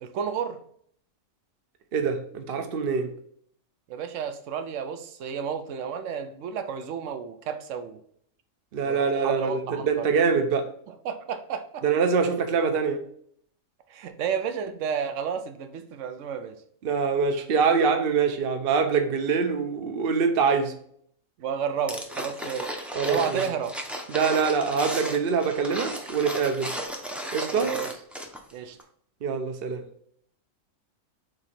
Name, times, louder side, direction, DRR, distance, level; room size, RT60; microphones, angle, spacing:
voice 1, 0.0-0.6 3.9-8.0 8.8-10.1 11.0-11.8 13.9-16.5 21.4-22.7 23.0-23.7 27.5-27.9 28.5-28.8, right 7 dB, 70° right, 8 dB, 1.0 m, -31 dB
voice 2, 1.9-3.1 8.7-10.7 11.8-13.0 16.8-20.7 23.0-23.5 24.1-26.7 27.3-27.7 29.2-29.8, right 5 dB, 50° right, 6 dB, 0.8 m, -24 dB
sound 1, 21.9-28.5 28.8-28.9, equal, ahead, 0.5 m, -35 dB
7.8 x 2.8 x 4.2 m, 0.64 s
omnidirectional pair, 1.4 m